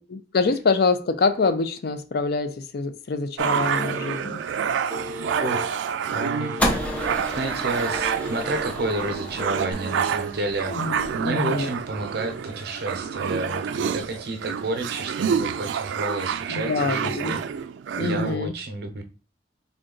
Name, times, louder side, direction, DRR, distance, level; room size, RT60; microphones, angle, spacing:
voice 1, 0.1-4.4 10.7-11.7 16.5-17.4 18.0-18.5, left 4 dB, 60° left, 10 dB, 0.5 m, -25 dB
sound 1, 3.4-18.4, right 7 dB, 90° right, 0.3 m, -28 dB
Telephone, 3.7-4.4 4.9-5.7 6.4-7.2 7.6-8.7 9.3-9.7, left 4 dB, 25° left, 1.1 m, -37 dB
voice 2, 5.4-6.6 7.4-10.8 11.1-17.4 18.0-19.0, right 2 dB, 60° right, 7 dB, 0.7 m, -30 dB
sound 2, 6.6-12.9, left 1 dB, 10° left, 0.6 m, -32 dB
3.8 x 2.3 x 3.7 m, 0.33 s
head